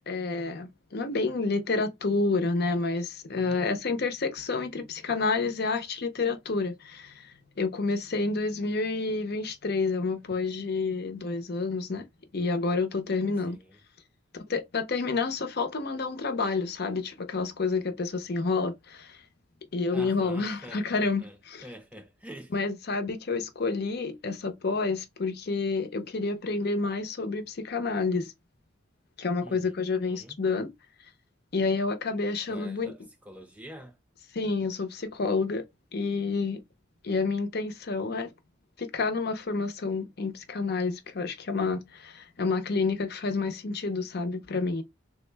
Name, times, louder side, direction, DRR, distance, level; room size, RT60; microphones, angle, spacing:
voice 1, 0.0-12.0 12.3-13.6 14.5-19.2 19.7-21.7 22.5-28.3 29.2-30.7 31.5-32.9 34.3-35.6 35.9-36.6 37.0-38.3 38.8-44.8, left 3 dB, 50° left, 0.6 m, -29 dB
voice 2, 3.3-3.7 13.5-13.8 19.9-21.4 21.6-22.5 29.4-29.7 30.0-30.4 32.5-34.0, equal, 5° right, 0.3 m, -46 dB
3.5 x 2.1 x 3.3 m
head